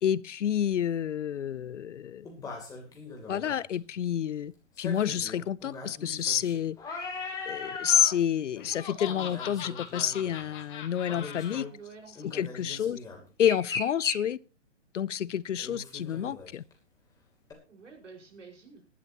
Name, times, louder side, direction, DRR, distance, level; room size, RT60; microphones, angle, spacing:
voice 1, 0.0-2.3 3.3-4.5 4.8-6.8 7.5-11.7 12.3-13.0 13.4-14.4 14.9-16.6, left 9 dB, 75° left, 0.7 m, -29 dB
sound 1, 0.7-0.8 2.2-3.6 4.8-8.1 8.5-8.7 9.0-10.5 11.1-11.7 12.2-14.2 15.6-16.7 17.5-17.6, left 3 dB, 10° left, 3.0 m, -39 dB
Laughter, 8.6-11.6, left 9 dB, 40° left, 1.9 m, -41 dB
voice 2, 11.7-12.5 12.9-13.0 17.7-18.8, right 5 dB, 80° right, 5.1 m, -50 dB
19.0 x 11.5 x 2.9 m
hypercardioid pair, 150°, 36 cm